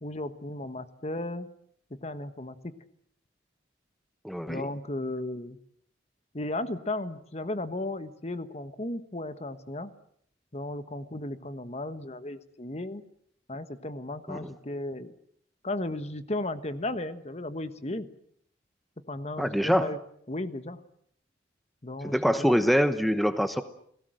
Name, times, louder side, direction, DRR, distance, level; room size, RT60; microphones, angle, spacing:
voice 1, 0.0-1.5 1.9-2.7 4.5-5.6 6.3-9.9 10.5-13.0 13.5-15.1 15.6-18.1 19.1-20.0 20.3-20.8 21.8-22.5, left 2 dB, 35° left, 11 dB, 1.3 m, -35 dB
voice 2, 4.2-4.7 14.3-14.5 19.4-19.9 22.0-23.6, equal, ahead, 10 dB, 0.9 m, -25 dB
30.0 x 19.0 x 7.8 m, 0.68 s
head